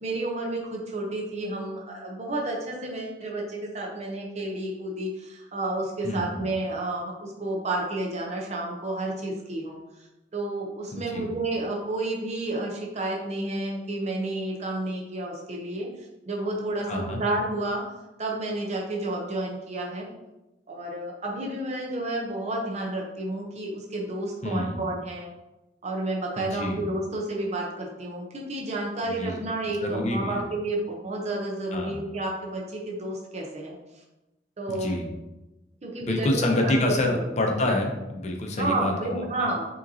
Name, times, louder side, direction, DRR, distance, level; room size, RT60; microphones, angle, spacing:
voice 1, 0.0-9.8 10.3-15.9 16.3-17.8 18.2-20.1 20.7-25.3 25.8-33.8 34.6-35.0 35.8-37.2 38.6-39.7, right 2 dB, 40° right, -1 dB, 0.7 m, -31 dB
voice 2, 6.0-6.4 10.9-11.3 16.9-17.2 24.4-24.8 26.4-26.8 29.0-29.4 29.8-30.4 31.7-32.0 34.7-35.0 36.0-39.5, left 1 dB, 40° left, 2 dB, 0.6 m, -27 dB
5.0 x 2.9 x 2.7 m, 0.99 s
head